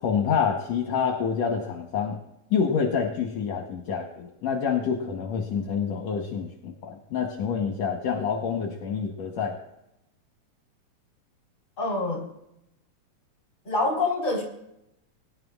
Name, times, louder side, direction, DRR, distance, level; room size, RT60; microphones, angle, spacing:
voice 1, 0.0-2.2 2.5-9.6, left 6 dB, 70° left, 1 dB, 2.2 m, -27 dB
voice 2, 11.8-12.3 13.6-14.4, left 2 dB, 25° left, 0 dB, 3.7 m, -26 dB
23.0 x 11.5 x 2.4 m, 0.82 s
omnidirectional pair, 3.3 m